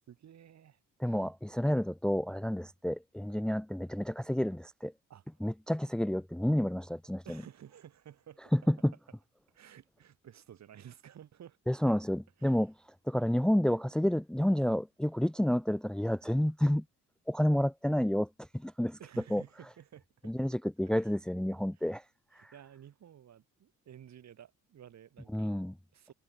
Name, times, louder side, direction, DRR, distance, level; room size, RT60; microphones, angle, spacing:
voice 1, 0.0-1.3 5.1-5.4 7.2-8.7 9.5-11.6 12.4-12.7 19.0-20.3 21.0-21.1 21.7-22.0 22.3-25.5 25.9-26.1, right 10 dB, 65° right, 6.0 m, -54 dB
voice 2, 1.0-4.9 5.4-7.2 8.5-8.9 11.7-12.7 13.1-16.8 17.3-18.3 18.5-19.0 19.3-19.4 20.2-22.0 22.4-22.5 25.3-25.7, equal, 5° left, 0.7 m, -30 dB
cardioid pair, 90°, 30 cm